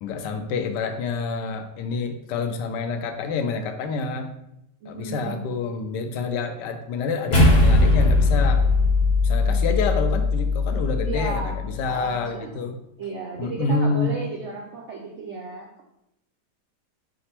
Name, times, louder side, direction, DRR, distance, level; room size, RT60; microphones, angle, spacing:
voice 1, 0.0-4.3 4.9-8.7 9.2-12.8 13.4-14.2, left 4 dB, 85° left, 7 dB, 1.2 m, -28 dB
voice 2, 4.8-5.5 9.3-10.0 11.0-11.6 11.8-12.7 13.0-15.7, right 3 dB, 75° right, 0 dB, 0.6 m, -34 dB
sound 1, 7.3-11.9, left 2 dB, 50° left, 0.5 m, -19 dB
4.9 x 2.1 x 4.3 m, 0.84 s
omnidirectional pair, 1.8 m